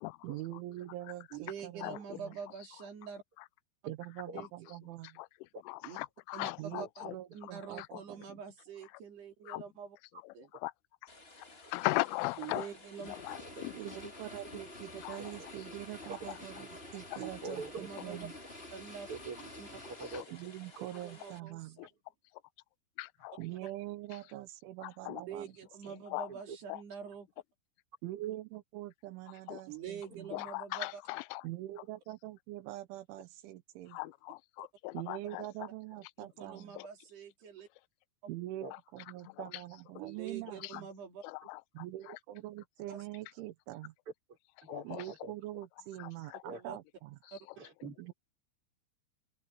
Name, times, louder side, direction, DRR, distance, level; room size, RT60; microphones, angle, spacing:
voice 1, 0.2-2.3 3.9-5.2 6.6-8.4 13.7-18.3 20.3-21.8 23.4-25.5 25.9-26.0 28.0-30.3 31.4-34.0 34.9-36.8 38.3-40.9 41.8-43.9 44.9-47.2 48.0-48.1, right 15 dB, 80° right, 3.4 m, -44 dB
voice 2, 1.3-3.2 4.3-4.7 5.8-6.0 6.3-7.1 7.3-10.0 10.3-10.5 12.4-13.2 17.2-17.3 17.7-18.3 18.7-19.1 19.6-19.7 21.0-21.8 25.1-27.3 29.7-31.0 36.2-37.7 40.0-41.2 42.9-43.0 46.5-46.8 47.3-47.4, right 7 dB, 60° right, 5.8 m, -45 dB
voice 3, 5.2-7.2 7.8-8.0 9.5-9.6 10.2-10.3 10.6-10.7 11.7-12.7 13.0-13.7 15.0-15.2 17.1-17.2 20.1-20.2 21.8-21.9 23.0-23.4 24.8-25.2 26.1-26.3 26.7-26.8 29.5-29.6 30.3-31.4 33.9-35.5 36.8-36.9 38.7-38.8 39.5-39.6 40.6-40.8 41.2-42.2 44.7-45.1 46.0-46.4 47.3-47.4, left 23 dB, 90° left, 3.1 m, -39 dB
sound 1, 11.1-21.4, left 2 dB, 35° left, 0.9 m, -56 dB
sound 2, 13.0-20.2, left 1 dB, 15° left, 4.0 m, -49 dB
voice 4, 16.1-16.5 17.4-18.2 19.1-20.3 26.3-26.6 38.6-38.7 39.2-39.4 41.4-41.5 44.6-45.3 46.4-46.6 47.6-48.1, right 3 dB, 30° right, 6.2 m, -45 dB
open air
omnidirectional pair, 5.5 m